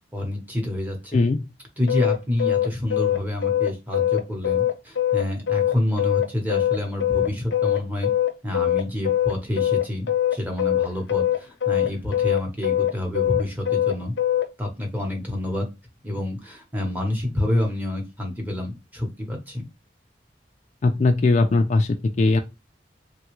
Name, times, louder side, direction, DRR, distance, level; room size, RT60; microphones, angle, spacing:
voice 1, 0.1-1.3 1.8-8.1 8.4-14.1 14.6-15.7 16.0-19.7, left 1 dB, 10° right, 0.9 m, -28 dB
sound 1, 1.9-14.5, left 11 dB, 85° left, 0.6 m, -22 dB
voice 2, 20.8-22.4, left 3 dB, 40° left, 0.3 m, -19 dB
3.2 x 2.3 x 3.0 m
head